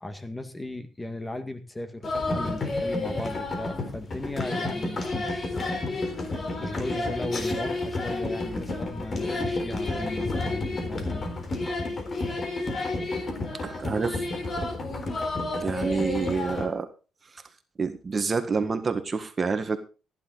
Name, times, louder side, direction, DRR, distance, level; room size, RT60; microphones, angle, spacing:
voice 1, 0.0-5.8 6.6-11.3, left 1 dB, 15° left, 9 dB, 1.9 m, -37 dB
sound 1, 2.0-16.7, left 2 dB, 40° left, 3.8 m, -30 dB
voice 2, 13.6-14.2 15.6-16.9 17.8-19.8, right 5 dB, 35° right, 8 dB, 1.6 m, -28 dB
15.0 x 10.5 x 3.9 m, 0.32 s
cardioid pair, 90°, 0 cm